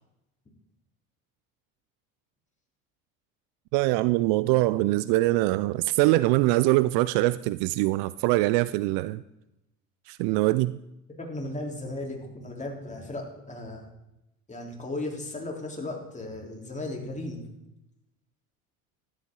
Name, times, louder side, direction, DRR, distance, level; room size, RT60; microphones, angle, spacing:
voice 1, 3.7-9.2 10.1-10.8, right 19 dB, 60° right, 0.5 m, -23 dB
voice 2, 11.2-13.8 14.5-17.4, left 2 dB, 15° left, 3.6 m, -36 dB
13.0 x 12.0 x 3.8 m
hypercardioid pair, 65°, 43 cm